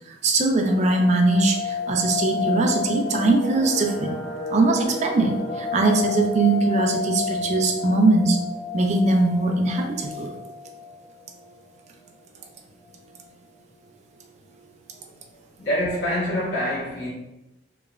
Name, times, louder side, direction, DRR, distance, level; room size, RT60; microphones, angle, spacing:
voice 1, 0.1-4.2 4.5-8.4 8.7-10.3, right 2 dB, 40° right, 2 dB, 0.3 m, -21 dB
sound 1, 0.7-11.5 11.7-11.8 12.2-12.4 12.8-13.3 13.8-13.9 14.0-14.6 14.9-15.0, left 4 dB, 35° left, 0.8 m, -31 dB
voice 2, 15.6-17.1, equal, 75° left, -9 dB, 1.3 m, -25 dB
3.0 x 2.1 x 2.3 m, 1.0 s
head